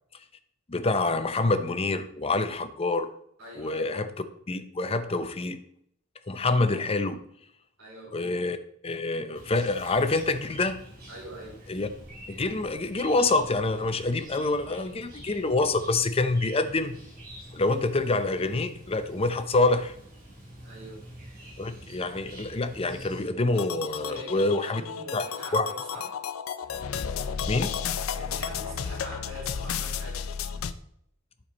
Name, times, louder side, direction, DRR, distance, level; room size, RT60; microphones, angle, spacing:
voice 1, 0.7-3.1 3.6-4.1 4.5-5.6 6.3-7.2 8.1-8.6 8.8-10.8 11.7-11.9 12.3-17.0 17.5-19.9 21.6-24.8 25.1-25.2 25.5-25.7 27.4-27.7, left 2 dB, 30° left, 10 dB, 0.6 m, -26 dB
voice 2, 3.4-4.1 7.8-8.4 11.1-11.6 20.6-21.0 23.9-26.2 28.2-30.3, right 1 dB, 80° right, -4 dB, 3.4 m, -43 dB
Chirp tweet, 9.3-23.3, right 1 dB, 45° right, 3.6 m, -46 dB
sound 1, 23.5-30.7, left 7 dB, 90° left, 0.5 m, -33 dB
9.0 x 6.8 x 4.1 m, 0.69 s
head